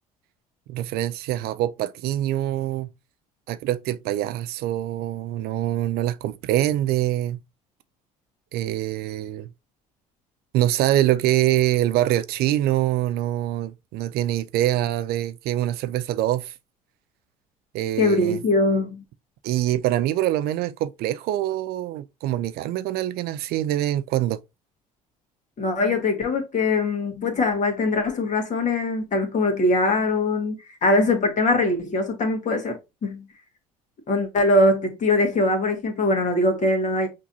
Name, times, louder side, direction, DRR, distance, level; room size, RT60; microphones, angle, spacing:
voice 1, 0.7-2.9 3.5-7.4 8.5-9.5 10.5-16.5 17.7-18.4 19.4-24.4, right 13 dB, 55° right, 0.4 m, -24 dB
voice 2, 18.0-19.0 25.6-33.2 34.1-37.1, left 2 dB, 40° left, 1.6 m, -22 dB
5.9 x 2.9 x 2.7 m
hypercardioid pair, 60°, 19 cm